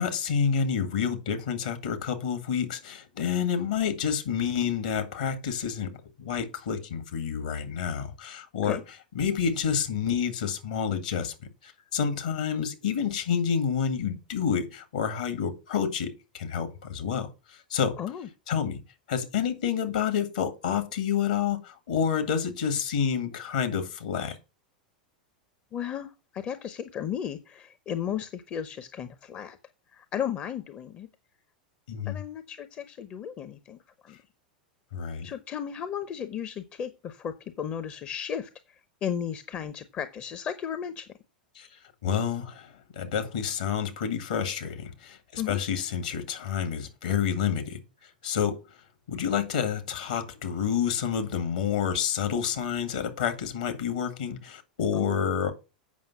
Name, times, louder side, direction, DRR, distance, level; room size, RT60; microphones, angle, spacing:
voice 1, 0.0-8.8 9.1-11.3 11.6-18.0 18.5-18.8 19.1-24.4 31.9-32.2 34.9-35.3 41.6-41.7 42.0-48.6 49.1-55.5, left 7 dB, 65° left, 2.0 m, -29 dB
voice 2, 18.0-18.3 25.7-29.6 29.9-31.1 32.1-34.2 35.2-38.5 39.0-41.1 45.4-45.6 54.9-55.1, left 8 dB, 30° left, 0.8 m, -34 dB
8.5 x 5.8 x 5.7 m
figure-of-eight pair, 90°, 5 cm